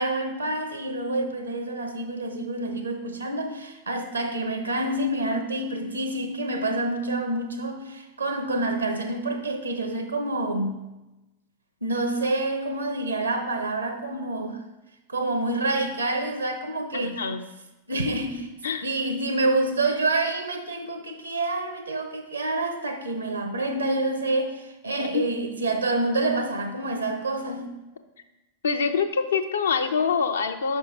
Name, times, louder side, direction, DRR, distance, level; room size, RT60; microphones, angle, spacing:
voice 1, 0.0-10.8 11.8-14.6 15.1-17.2 17.9-18.5 18.8-27.7, right 2 dB, 80° right, 7 dB, 0.8 m, -27 dB
voice 2, 16.9-17.5 18.6-18.9 25.0-25.2 28.6-30.8, left 5 dB, 70° left, 8 dB, 0.5 m, -25 dB
5.6 x 5.4 x 4.3 m, 1.0 s
figure-of-eight pair, 90°, 0 cm